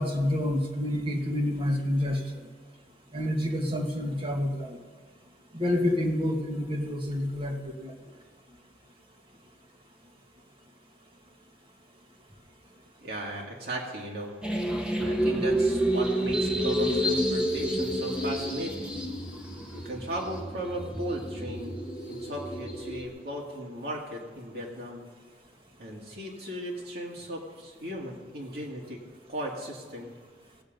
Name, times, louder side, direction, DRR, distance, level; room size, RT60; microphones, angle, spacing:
voice 1, 0.0-2.2 3.1-4.8 5.5-7.9, left 1 dB, 30° right, 0 dB, 1.7 m, -28 dB
voice 2, 13.0-14.3 15.0-19.0 19.7-21.7 22.1-25.0 25.8-29.0 29.3-30.1, right 1 dB, 60° right, -2 dB, 2.3 m, -36 dB
sound 1, 14.4-23.1, equal, 5° right, 1.4 m, -29 dB
18.5 x 7.6 x 5.3 m, 1.5 s
head